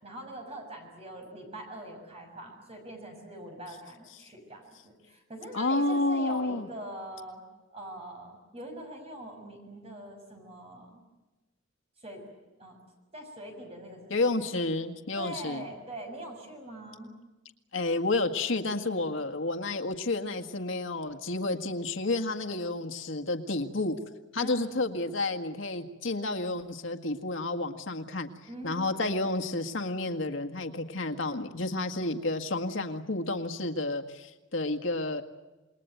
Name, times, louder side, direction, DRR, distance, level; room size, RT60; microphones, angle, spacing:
voice 1, 0.0-7.4 7.7-11.0 12.0-12.2 12.6-12.8 13.1-14.2 15.2-17.1 24.4-24.8 28.5-29.0, right 1 dB, 30° right, 2 dB, 6.7 m, -43 dB
voice 2, 5.5-6.7 14.1-15.6 17.7-24.0 24.3-28.3 28.6-35.2, left 2 dB, 80° left, 6 dB, 1.8 m, -30 dB
28.0 x 21.5 x 9.2 m, 1.1 s
head